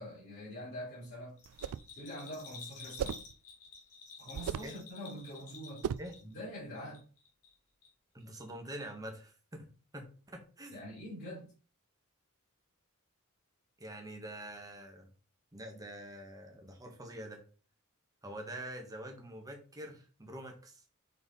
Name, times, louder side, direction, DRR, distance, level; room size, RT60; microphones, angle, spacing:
voice 1, 0.0-1.4 1.9-3.2 4.2-5.8 6.2-7.0 10.7-11.5, equal, 50° left, 3.2 m, -44 dB
Bell, 1.4-6.5 6.8-7.5 7.8-7.9, left 5 dB, 85° left, 2.5 m, -51 dB
sound 1, 1.5-1.9 3.0-3.3 4.3-4.8 5.8-6.2, right 8 dB, 85° right, 0.3 m, -36 dB
voice 2, 8.1-9.3 9.9-10.8 13.8-15.1 15.5-17.4 18.2-20.8, right 1 dB, 15° right, 1.5 m, -45 dB
5.6 x 4.6 x 4.2 m
head